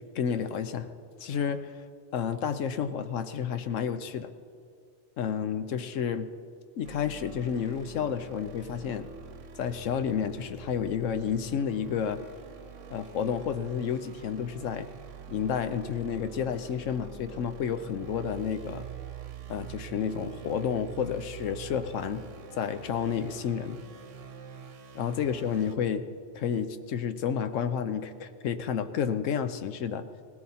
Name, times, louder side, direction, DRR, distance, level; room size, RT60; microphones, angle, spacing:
voice 1, 0.1-0.9 1.2-1.8 2.1-4.3 5.2-6.3 6.8-9.1 9.6-12.2 12.9-14.9 15.3-18.8 19.5-22.2 22.6-23.8 24.9-26.0 26.3-30.1, left 7 dB, 85° left, 10 dB, 1.1 m, -30 dB
sound 1, 6.8-25.8, right 7 dB, 85° right, 1.2 m, -45 dB
19.0 x 17.0 x 4.2 m, 2.2 s
omnidirectional pair, 1.3 m